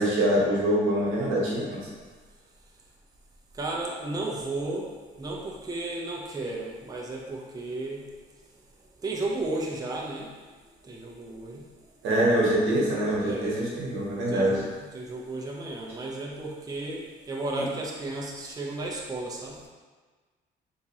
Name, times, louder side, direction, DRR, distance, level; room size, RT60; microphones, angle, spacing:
voice 1, 0.0-1.6 12.0-14.6, right 1 dB, 85° right, -5 dB, 1.1 m, -24 dB
voice 2, 3.6-4.9 5.2-8.0 9.0-10.3 10.8-11.6 13.2-13.6 14.3-19.7, right 2 dB, 20° right, -2 dB, 0.5 m, -34 dB
3.6 x 2.9 x 2.8 m, 1.4 s
cardioid pair, 90°, 20 cm